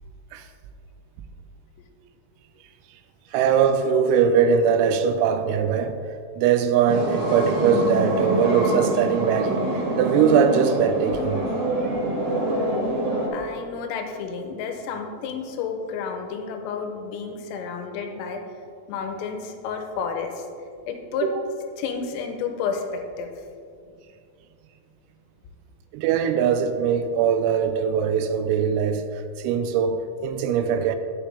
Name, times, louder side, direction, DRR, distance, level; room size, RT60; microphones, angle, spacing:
voice 1, 3.3-6.0 6.4-9.6 10.0-11.4 21.2-21.3 25.9-29.0 29.4-31.0, right 7 dB, 90° right, 3.3 m, -21 dB
sound 1, 6.9-13.3, right 1 dB, 50° right, 2.3 m, -26 dB
voice 2, 12.5-13.0 13.3-18.4 18.9-20.5 20.9-21.3 21.8-23.3, left 6 dB, 85° left, 3.4 m, -31 dB
10.0 x 8.6 x 3.3 m
omnidirectional pair, 6.0 m